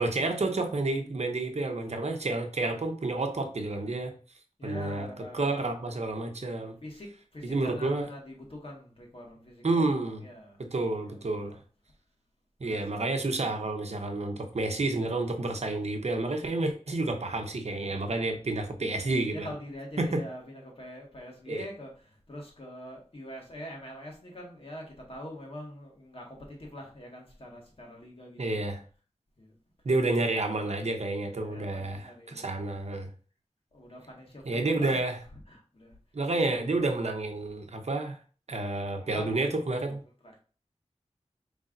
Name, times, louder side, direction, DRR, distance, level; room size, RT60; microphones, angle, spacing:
voice 1, 0.0-4.1 4.6-5.1 5.3-6.7 7.4-8.1 9.6-10.2 10.7-11.6 12.6-19.5 20.0-20.2 21.5-21.6 28.4-28.8 29.8-33.1 34.4-35.1 36.1-38.2 38.5-40.0, right 2 dB, 65° right, 4 dB, 0.8 m, -30 dB
voice 2, 4.6-6.0 6.8-10.6 11.0-11.6 12.6-13.0 19.3-28.6 29.4-29.5 31.3-32.5 33.7-35.0 35.5-35.9 38.9-40.4, equal, 50° left, -1 dB, 1.7 m, -44 dB
5.3 x 3.3 x 2.6 m, 0.39 s
wide cardioid pair, 55°, 12 cm